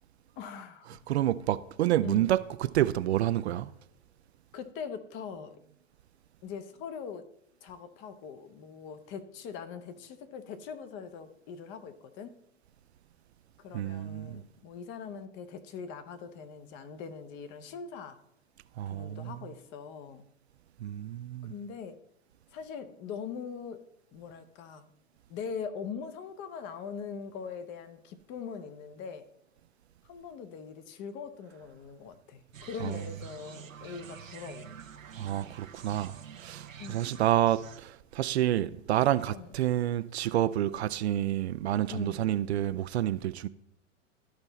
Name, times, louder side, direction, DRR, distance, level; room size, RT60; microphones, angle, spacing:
voice 1, 0.4-1.0 2.0-2.3 4.5-5.5 6.4-7.3 7.6-12.3 13.6-18.2 18.9-20.2 21.5-22.0 22.5-23.8 24.1-24.9 25.3-29.3 30.0-34.7 36.8-37.2 39.3-39.5 41.9-42.3, left 6 dB, 30° left, 0.8 m, -42 dB
voice 2, 1.1-3.7 13.7-14.4 18.8-19.4 20.8-21.5 32.8-33.0 35.2-43.5, right 13 dB, 60° right, 0.5 m, -29 dB
sound 1, 32.5-37.8, right 8 dB, 85° right, 0.8 m, -48 dB
12.5 x 4.4 x 4.0 m
hypercardioid pair, 110°, 39 cm